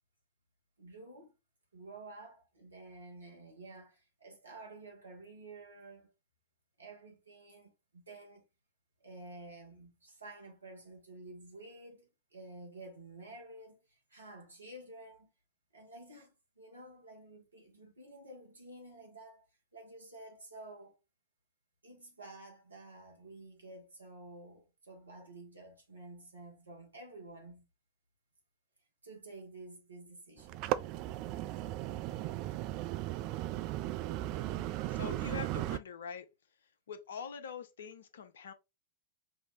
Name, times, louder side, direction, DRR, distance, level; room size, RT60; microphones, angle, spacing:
voice 1, 0.8-1.3 1.7-6.1 6.8-8.4 9.0-15.3 15.7-21.0 21.8-27.6 29.0-30.7, right 2 dB, 80° right, 1.5 m, -51 dB
sound 1, 30.4-35.8, right 15 dB, 45° right, 0.3 m, -36 dB
voice 2, 34.3-36.3 36.9-38.5, left 6 dB, 65° left, 0.7 m, -44 dB
5.4 x 2.8 x 3.0 m
figure-of-eight pair, 90°, 0 cm